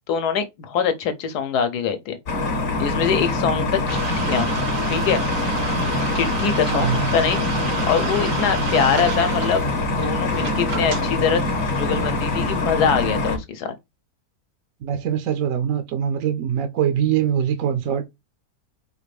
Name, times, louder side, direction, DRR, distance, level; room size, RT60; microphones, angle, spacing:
voice 1, 0.1-2.2 2.8-4.5 4.9-5.2 6.1-7.4 7.9-9.6 10.0-11.4 11.7-13.7, left 7 dB, 70° left, 1.2 m, -23 dB
sound 1, 2.3-13.4, left 3 dB, 45° left, 1.0 m, -24 dB
sound 2, 3.9-12.6, right 7 dB, 90° right, 1.6 m, -31 dB
voice 2, 6.7-7.0 14.8-18.0, right 9 dB, 65° right, 0.8 m, -23 dB
4.7 x 2.5 x 3.2 m
omnidirectional pair, 1.8 m